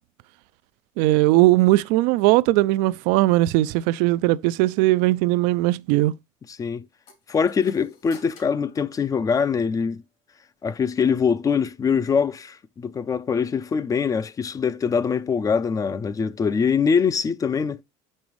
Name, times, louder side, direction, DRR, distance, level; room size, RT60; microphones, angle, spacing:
voice 1, 1.0-6.1, right 18 dB, 80° right, 0.4 m, -19 dB
voice 2, 6.5-6.8 7.3-10.0 10.6-17.8, left 6 dB, 25° left, 0.5 m, -23 dB
sound 1, 7.1-9.8, left 5 dB, 65° left, 2.8 m, -51 dB
6.1 x 5.4 x 3.0 m
cardioid pair, 120°, 14 cm